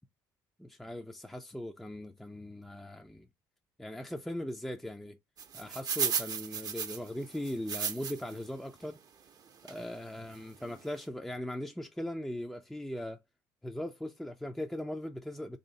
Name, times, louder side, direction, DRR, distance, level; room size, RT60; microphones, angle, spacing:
voice 1, 0.6-3.3 3.8-5.2 5.5-9.0 9.6-13.2 13.6-15.6, left 1 dB, 5° left, 0.4 m, -39 dB
sound 1, 5.4-8.4 8.8-8.9 9.7-9.8 10.3-10.4 10.6-10.8, right 7 dB, 45° right, 0.6 m, -34 dB
3.0 x 2.8 x 3.9 m
supercardioid pair, 75°, 9 cm